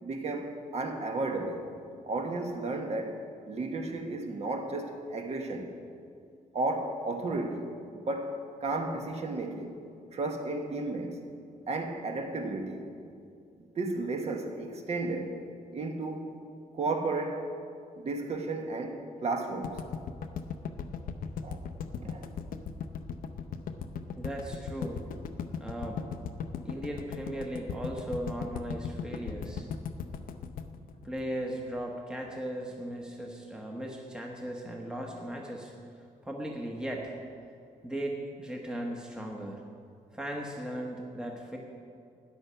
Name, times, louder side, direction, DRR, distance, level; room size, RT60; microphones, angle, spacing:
voice 1, 0.0-1.7 2.1-5.7 6.5-9.7 10.1-11.2 11.7-12.9 13.8-15.4 15.7-16.3 16.7-17.4 18.0-19.8 21.4-21.6 22.0-22.3, right 2 dB, 50° right, 4 dB, 1.3 m, -33 dB
sound 1, 19.6-31.8, left 6 dB, 85° left, 0.7 m, -37 dB
voice 2, 24.2-25.0 25.6-26.1 26.7-29.7 31.0-35.7 36.2-37.2 37.8-39.6 40.1-41.6, right 1 dB, 5° right, 0 dB, 1.0 m, -37 dB
13.0 x 9.6 x 5.7 m, 2.4 s
wide cardioid pair, 160°, 14 cm